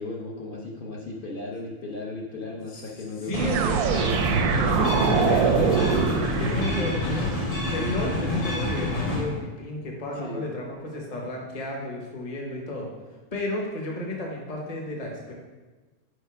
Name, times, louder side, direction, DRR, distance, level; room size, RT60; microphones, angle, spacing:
voice 1, 0.0-5.8 10.1-10.5, left 2 dB, 50° left, -2 dB, 0.7 m, -36 dB
voice 2, 3.3-3.8 4.6-5.8 6.2-12.9 13.3-15.3, left 1 dB, 30° left, -1 dB, 1.0 m, -32 dB
sound 1, 3.3-7.3, right 6 dB, 85° right, 1.1 m, -24 dB
sound 2, 3.8-9.2, left 1 dB, 90° left, 2.4 m, -27 dB
4.9 x 4.4 x 4.7 m, 1.3 s
omnidirectional pair, 1.6 m